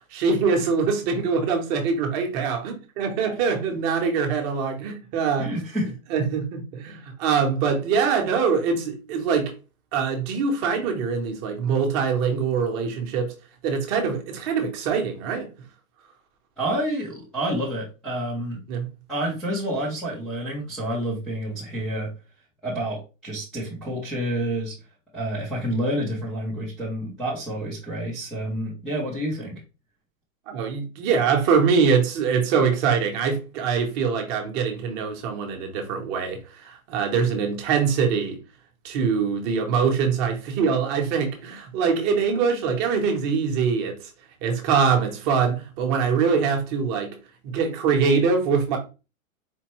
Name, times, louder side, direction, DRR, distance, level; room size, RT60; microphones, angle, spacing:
voice 1, 0.1-5.5 6.1-9.5 9.9-13.3 13.6-15.5 18.7-18.9 30.5-38.4 38.8-44.1 44.4-47.1 47.4-48.8, right 5 dB, 30° right, 0.8 m, -23 dB
voice 2, 5.4-5.9 16.6-18.6 19.1-22.1 22.6-24.7 25.1-29.6, right 1 dB, ahead, 0.4 m, -28 dB
4.4 x 2.5 x 3.0 m
hypercardioid pair, 155°, 42 cm